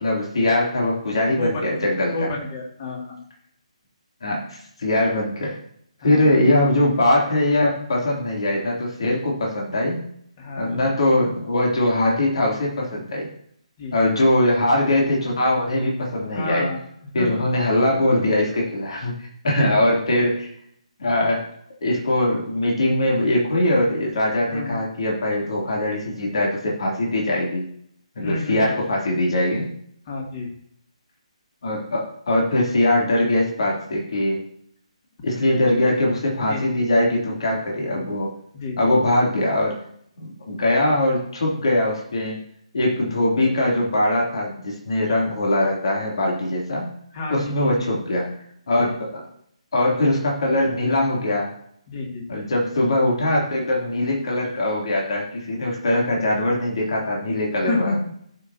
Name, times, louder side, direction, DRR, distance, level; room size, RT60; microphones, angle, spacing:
voice 1, 0.0-2.3 4.2-5.5 6.0-10.0 10.6-13.3 13.9-16.7 17.1-19.1 19.4-20.5 21.0-21.4 21.8-27.6 28.1-29.7 31.6-34.4 35.2-38.3 38.8-39.8 40.2-42.4 42.7-46.9 47.3-48.4 48.7-49.3 49.7-51.5 52.3-58.0, left 1 dB, 50° left, -2 dB, 3.2 m, -21 dB
voice 2, 1.3-3.2 6.0-6.3 10.4-10.8 13.8-14.0 16.3-16.8 17.2-17.3 19.5-19.7 24.5-24.8 28.2-28.7 30.1-30.5 36.4-36.8 37.8-38.1 38.5-38.8 47.1-47.8 48.8-49.0 51.9-52.4 57.7-58.0, left 3 dB, 30° left, -1 dB, 2.6 m, -30 dB
16.5 x 6.3 x 2.9 m, 0.68 s
figure-of-eight pair, 145°, 4 cm